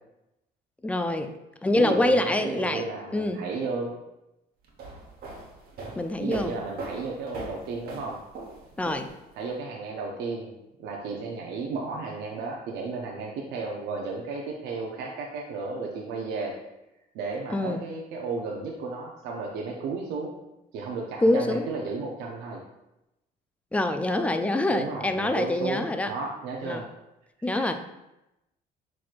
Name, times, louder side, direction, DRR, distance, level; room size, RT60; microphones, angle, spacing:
voice 1, 0.8-1.3 1.6-2.9 3.1-3.4 6.0-6.5 8.8-9.1 17.5-17.8 21.2-21.7 23.7-26.1 26.6-26.8 27.4-27.8, left 1 dB, 10° left, 8 dB, 0.3 m, -25 dB
voice 2, 1.8-4.0 6.2-8.2 9.3-10.5 10.8-16.6 17.1-20.3 20.7-22.6 24.7-26.9 27.4-27.7, right 4 dB, 85° right, -1 dB, 0.6 m, -33 dB
sound 1, 4.6-9.5, right 3 dB, 65° right, 1.0 m, -41 dB
6.0 x 3.0 x 2.4 m, 0.93 s
cardioid pair, 110°, 17 cm